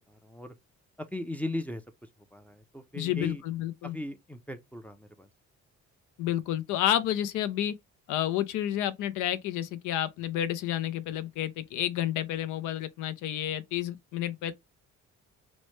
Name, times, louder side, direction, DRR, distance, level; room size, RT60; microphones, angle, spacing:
voice 1, 0.1-0.5 1.1-1.8 2.3-3.4 3.8-5.3, left 1 dB, 5° left, 0.4 m, -37 dB
voice 2, 2.9-4.0 6.2-7.7 8.1-14.5, left 12 dB, 90° left, 0.5 m, -30 dB
2.9 x 2.1 x 3.1 m
cardioid pair, 90°, 30 cm